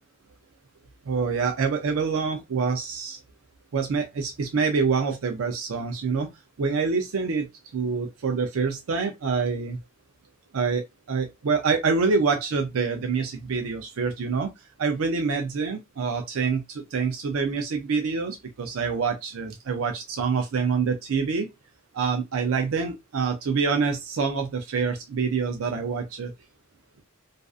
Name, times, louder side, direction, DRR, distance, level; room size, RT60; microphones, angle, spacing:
voice 1, 1.1-3.2 3.7-6.3 6.6-7.5 7.7-9.8 10.5-14.5 14.8-21.5 21.9-26.3, right 5 dB, 90° right, 0.5 m, -26 dB
2.5 x 2.4 x 2.3 m
head